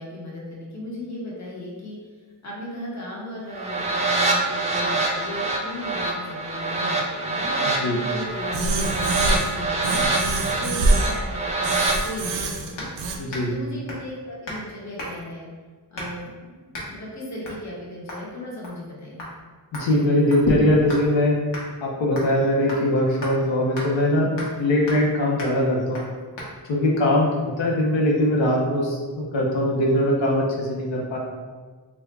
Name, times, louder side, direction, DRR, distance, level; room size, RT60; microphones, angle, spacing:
voice 1, 0.0-2.0 2.4-10.1 10.6-12.9 13.5-15.5 15.9-19.3, left 1 dB, 40° left, -5 dB, 1.0 m, -36 dB
sound 1, 3.5-12.0, right 2 dB, 15° right, 0.3 m, -25 dB
voice 2, 7.7-8.0 13.2-13.6 19.7-21.4 21.8-24.3 24.6-26.0 26.7-31.2, left 1 dB, 90° left, -2 dB, 0.7 m, -21 dB
sound 2, 8.5-9.6 9.8-11.2 11.6-13.2, right 2 dB, 80° right, 0.5 m, -24 dB
sound 3, 12.8-13.0 13.3-13.6 13.9-14.1 14.5-14.7 15.0-15.3 16.0-16.3 16.7-16.9 17.4-17.6 18.1-18.3 18.6-18.9 19.2-19.3 19.7-21.1 21.5-21.7 22.2-22.4 22.7-22.8 23.2-23.3 23.8-23.9 24.4-24.6 24.9-25.1 25.4-25.6 25.9-26.1 26.4-26.5, left 1 dB, 70° left, 1.0 m, -36 dB
3.4 x 2.1 x 3.2 m, 1.5 s
wide cardioid pair, 125°, 43 cm